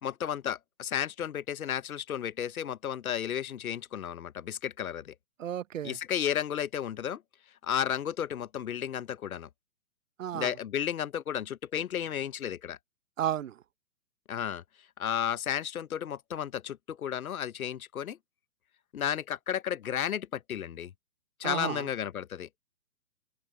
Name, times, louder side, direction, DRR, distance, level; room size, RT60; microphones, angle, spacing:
voice 1, 0.0-5.1 5.8-7.2 7.6-9.5 10.3-12.8 14.3-14.6 15.0-18.2 18.9-20.9 21.4-22.5, left 9 dB, 65° left, 1.1 m, -33 dB
voice 2, 5.4-6.0 10.2-10.5 13.2-13.5 21.4-21.8, right 10 dB, 55° right, 1.1 m, -32 dB
hypercardioid pair, 140°, 45 cm